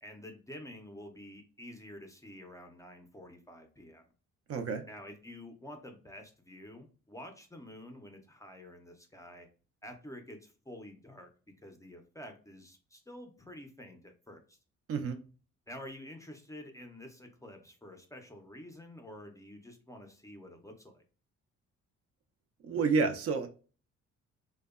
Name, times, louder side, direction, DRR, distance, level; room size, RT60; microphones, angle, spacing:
voice 1, 0.0-4.0 4.9-9.5 9.8-14.6 15.7-21.0, left 1 dB, 10° left, 0.4 m, -49 dB
voice 2, 4.5-4.9 14.9-15.2 22.6-23.5, right 4 dB, 50° right, 0.4 m, -29 dB
2.6 x 2.2 x 2.3 m
cardioid pair, 90°, 30 cm